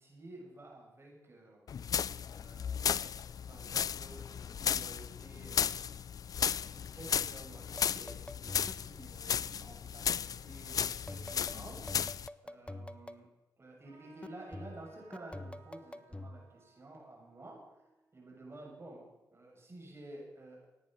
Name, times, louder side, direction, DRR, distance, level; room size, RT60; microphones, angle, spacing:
voice 1, 0.0-1.7 2.3-6.0 6.5-11.9 12.2-13.3 13.6-20.7, right 2 dB, 40° right, 0 dB, 6.3 m, -52 dB
sound 1, 1.7-12.3, left 8 dB, 60° left, 0.4 m, -35 dB
sound 2, 7.8-9.0 11.1-13.2 14.2-16.5, left 1 dB, 15° left, 0.8 m, -46 dB
Trumpet, 13.8-18.8, right 5 dB, 80° right, 5.9 m, -64 dB
17.0 x 9.4 x 6.4 m, 1.0 s
supercardioid pair, 45°, 7 cm